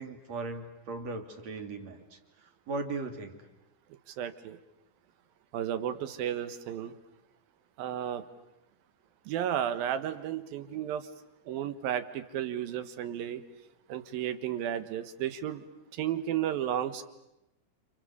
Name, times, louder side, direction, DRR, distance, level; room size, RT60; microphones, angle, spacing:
voice 1, 0.0-3.5, right 3 dB, 50° right, 5 dB, 3.4 m, -38 dB
voice 2, 4.2-4.6 5.5-6.9 7.8-8.2 9.3-11.1 11.5-13.4 13.9-15.6 15.9-17.1, right 10 dB, 75° right, 11 dB, 3.1 m, -33 dB
30.0 x 29.5 x 6.8 m, 0.88 s
omnidirectional pair, 4.3 m